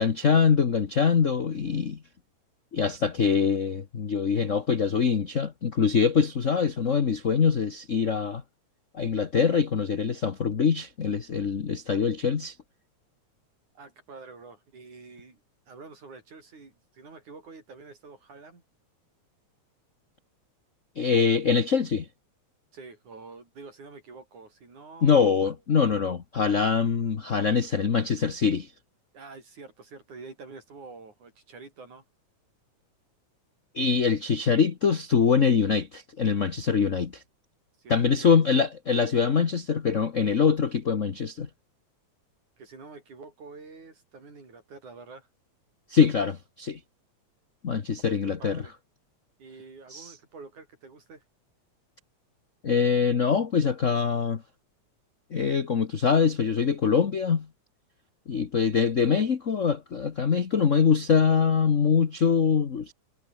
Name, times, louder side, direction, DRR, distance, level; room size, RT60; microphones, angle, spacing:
voice 1, 0.0-2.0 2.7-8.4 8.9-12.5 21.0-22.1 25.0-28.7 33.7-37.2 37.9-41.5 45.9-46.8 47.6-48.6 49.9-50.1 52.6-54.4 55.3-57.5 58.3-62.9, left 6 dB, 50° left, 0.9 m, -24 dB
voice 2, 13.7-15.4 15.7-18.6 22.7-25.2 29.1-32.0 37.8-38.4 42.6-45.3 48.1-48.7 49.4-51.2, right 4 dB, 90° right, 7.9 m, -47 dB
omnidirectional pair, 3.3 m